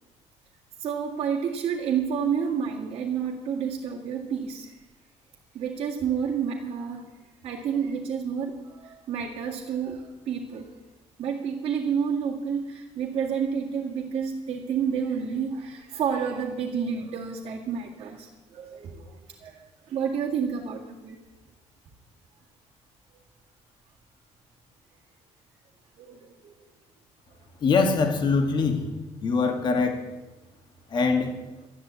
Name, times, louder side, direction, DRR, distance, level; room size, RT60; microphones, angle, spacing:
voice 1, 0.8-4.8 5.5-7.1 7.4-10.7 11.2-21.2 26.0-26.5, right 7 dB, 55° right, -4 dB, 2.0 m, -30 dB
voice 2, 27.6-28.8 29.2-30.0 30.9-31.3, left 4 dB, 40° left, 4 dB, 2.1 m, -23 dB
13.0 x 10.5 x 8.5 m, 1.1 s
cardioid pair, 155°, 12 cm